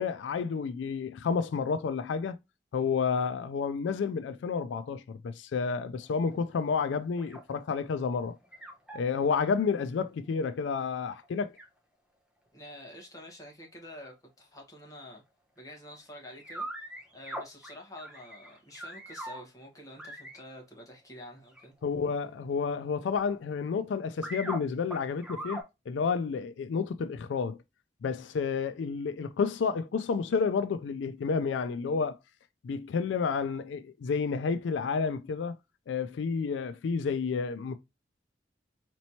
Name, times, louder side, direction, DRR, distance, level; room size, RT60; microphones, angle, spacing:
voice 1, 0.0-2.4 2.7-8.4 8.9-11.5 21.8-25.6 25.9-27.6 28.0-32.2 32.6-35.6 35.9-37.8, left 5 dB, 85° left, 0.3 m, -30 dB
sound 1, 6.0-7.8 8.2-9.0 10.5-10.6 10.8-10.9 11.2-11.3 11.6-11.7 14.6-14.7 15.7-15.8 16.2-19.4 20.0-20.5 21.5-21.8 22.2-23.7 24.0-24.6 24.9-25.6, right 1 dB, 5° right, 0.7 m, -41 dB
voice 2, 12.5-15.2 15.6-16.7 17.1-21.7, left 1 dB, 20° left, 1.3 m, -48 dB
4.2 x 3.0 x 2.7 m
head